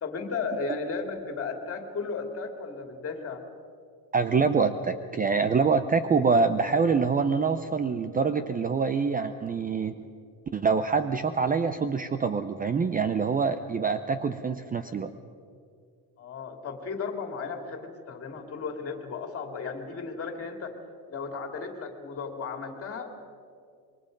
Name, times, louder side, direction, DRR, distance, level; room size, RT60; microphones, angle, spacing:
voice 1, 0.0-3.4 16.2-20.7 21.1-23.1, left 4 dB, 30° left, 5 dB, 2.7 m, -35 dB
voice 2, 4.1-9.9 10.5-15.1, right 5 dB, 20° right, 10 dB, 0.6 m, -25 dB
26.5 x 23.0 x 5.3 m, 2.3 s
cardioid pair, 150°, 43 cm